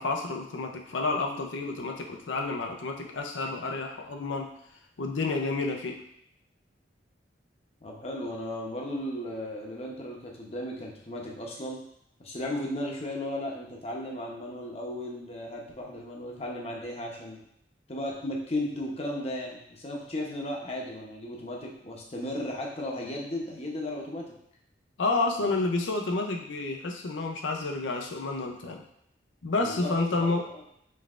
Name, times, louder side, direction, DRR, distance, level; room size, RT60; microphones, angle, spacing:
voice 1, 0.0-4.5 5.0-6.0 25.0-28.8 29.4-30.4, left 3 dB, 85° left, 3 dB, 0.6 m, -30 dB
voice 2, 7.8-11.8 12.2-17.4 17.9-24.4 29.6-30.3, left 1 dB, 35° left, -1 dB, 0.8 m, -35 dB
5.3 x 3.3 x 2.5 m, 0.73 s
head